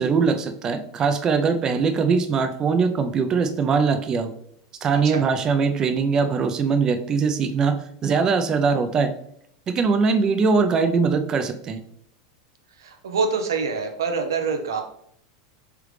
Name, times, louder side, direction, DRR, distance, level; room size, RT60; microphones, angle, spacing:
voice 1, 0.0-4.3 4.8-9.1 9.7-11.8, right 5 dB, 30° right, 8 dB, 0.5 m, -21 dB
voice 2, 12.8-14.8, right 5 dB, 90° right, 5 dB, 0.7 m, -25 dB
3.6 x 3.4 x 3.2 m, 0.70 s
hypercardioid pair, 110°, 2 cm